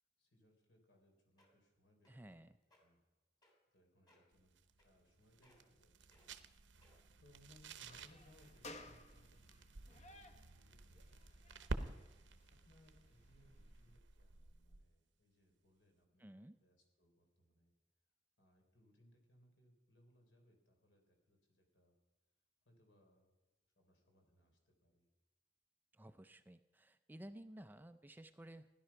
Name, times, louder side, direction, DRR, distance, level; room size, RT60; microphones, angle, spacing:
voice 1, 0.2-2.4 2.8-3.0 3.7-4.5 4.8-6.2 6.6-11.6 12.6-17.7 18.4-22.0 22.7-23.3 23.8-25.1, left 1 dB, 70° left, 2 dB, 3.6 m, -70 dB
sound 1, 1.0-1.1 1.4-1.7 2.0-2.3 2.6-2.8 3.4-3.8 4.1-4.3 4.8-5.1 5.4-5.8 6.1-6.3 6.8-7.2 7.8-7.9, left 1 dB, 20° left, 3.0 m, -71 dB
voice 2, 2.1-2.5 16.2-16.6 25.9-28.7, right 1 dB, 10° right, 10 dB, 0.4 m, -55 dB
sound 2, 4.3-15.0, right 2 dB, 70° right, 0.8 m, -51 dB
sound 3, 7.9-13.9, left 2 dB, 35° left, 1.1 m, -60 dB
16.5 x 11.0 x 5.8 m, 1.1 s
head